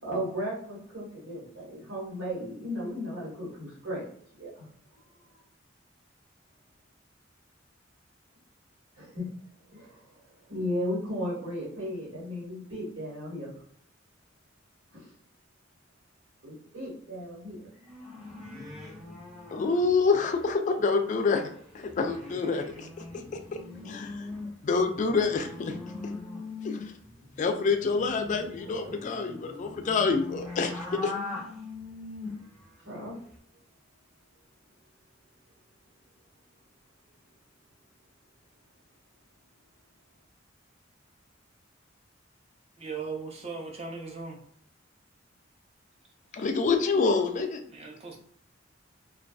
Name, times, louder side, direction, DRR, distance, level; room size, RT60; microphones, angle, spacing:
voice 1, 0.0-4.1 4.4-4.7 5.3-5.4 8.9-9.3 9.7-10.1 10.5-13.5 14.9-15.1 16.4-17.7 28.7-28.9 32.8-33.2, equal, 80° right, -7 dB, 1.4 m, -35 dB
sound 1, 17.7-20.5 20.8-20.9 21.2-32.6 32.9-33.3, left 3 dB, ahead, 0.8 m, -42 dB
voice 2, 19.5-21.5 21.7-23.0 23.5-23.6 23.8-24.3 24.6-25.8 26.6-26.9 27.4-31.1 46.3-47.6, left 4 dB, 40° left, 6 dB, 0.3 m, -27 dB
voice 3, 42.8-44.4 46.3-46.4 47.7-48.2, right 4 dB, 30° right, 0 dB, 0.5 m, -38 dB
2.5 x 2.2 x 2.2 m, 0.62 s
head